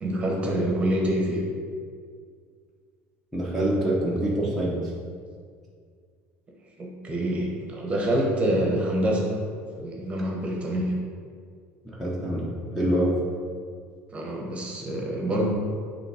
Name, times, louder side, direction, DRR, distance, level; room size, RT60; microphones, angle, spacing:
voice 1, 0.0-1.4 6.8-9.3 9.8-10.9 14.1-15.5, right 1 dB, 20° right, -1 dB, 1.1 m, -26 dB
voice 2, 3.3-4.8 11.8-12.5 12.7-13.1, right 1 dB, ahead, -8 dB, 0.9 m, -25 dB
6.9 x 3.3 x 4.9 m, 2.1 s
cardioid pair, 145°, 5 cm